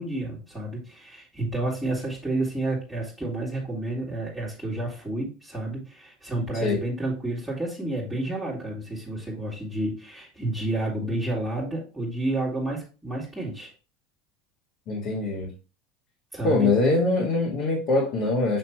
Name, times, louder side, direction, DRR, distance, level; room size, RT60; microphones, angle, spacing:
voice 1, 0.0-13.7 16.3-16.7, right 2 dB, 5° right, -6 dB, 1.9 m, -30 dB
voice 2, 14.9-15.5 16.4-18.6, left 3 dB, 50° left, -2 dB, 1.7 m, -23 dB
6.8 x 3.1 x 4.5 m, 0.33 s
supercardioid pair, 120°, 0 cm